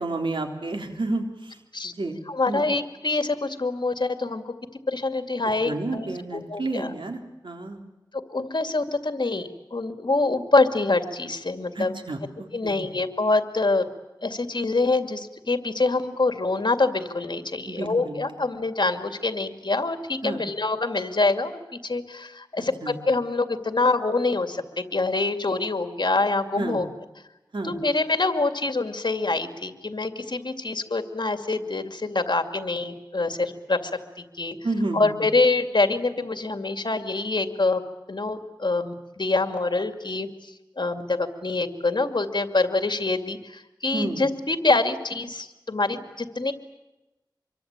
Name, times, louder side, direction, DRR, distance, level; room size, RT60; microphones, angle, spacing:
voice 1, 0.0-1.6 1.8-2.2 2.5-2.6 5.6-7.8 11.8-12.9 17.7-18.4 20.2-20.4 22.6-23.0 26.6-26.8 27.5-27.7 34.6-35.3 43.9-44.2, right 2 dB, 90° right, 3 dB, 3.7 m, -31 dB
voice 2, 1.7-4.4 4.9-6.9 8.1-11.9 12.5-13.9 14.2-26.9 27.6-33.9 34.2-34.6 34.9-37.8 38.1-46.5, left 3 dB, 65° left, 7 dB, 2.3 m, -25 dB
26.0 x 23.0 x 8.9 m, 1.0 s
wide cardioid pair, 55°, 8 cm